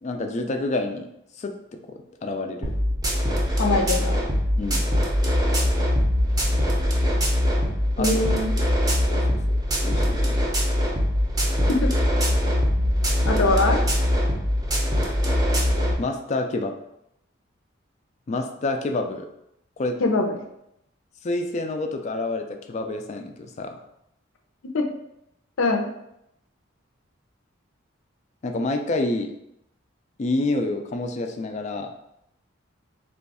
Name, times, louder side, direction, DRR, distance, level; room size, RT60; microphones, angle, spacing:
voice 1, 0.0-1.1 1.4-1.5 1.9-2.7 4.6-4.8 8.0-8.2 9.1-9.6 9.8-10.4 16.0-16.7 18.3-19.3 19.8-20.0 21.2-23.8 28.4-29.3 30.2-31.9, left 2 dB, 35° left, 5 dB, 0.3 m, -28 dB
sound 1, 2.6-15.9, equal, 20° right, 0.5 m, -22 dB
voice 2, 3.6-4.2 8.0-8.5 11.7-11.9 13.3-13.8 20.0-20.4 24.7-24.9 25.6-25.9, left 2 dB, 85° left, 3 dB, 0.6 m, -22 dB
3.0 x 2.3 x 4.0 m, 0.80 s
head